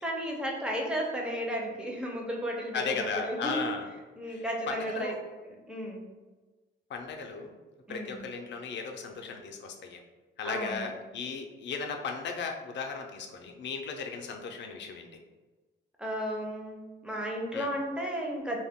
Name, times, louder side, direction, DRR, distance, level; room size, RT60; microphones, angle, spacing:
voice 1, 0.0-3.6 4.2-5.1 5.5-6.1 7.9-8.3 10.4-10.9 16.0-18.6, equal, 5° right, -1 dB, 0.4 m, -34 dB
voice 2, 2.7-3.9 4.3-5.2 6.9-7.5 7.9-10.0 10.4-15.1 17.5-17.7, left 5 dB, 65° left, 3 dB, 0.4 m, -36 dB
2.2 x 2.1 x 3.5 m, 1.3 s
wide cardioid pair, 130°, 20 cm